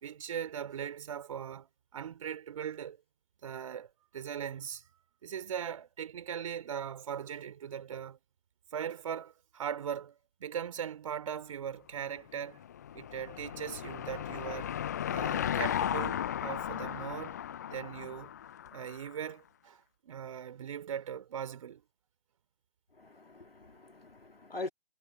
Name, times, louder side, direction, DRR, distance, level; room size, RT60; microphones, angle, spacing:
voice 1, 0.0-3.0 3.4-4.8 5.2-8.2 8.7-12.6 12.9-14.7 15.1-17.4 17.7-18.3 18.7-21.8, right 8 dB, 35° right, 3.9 m, -39 dB
Car passing by / Engine, 12.3-19.1, left 10 dB, 20° left, 0.8 m, -35 dB
voice 2, 23.0-24.7, left 2 dB, 75° left, 2.4 m, -43 dB
figure-of-eight pair, 145°, 30 cm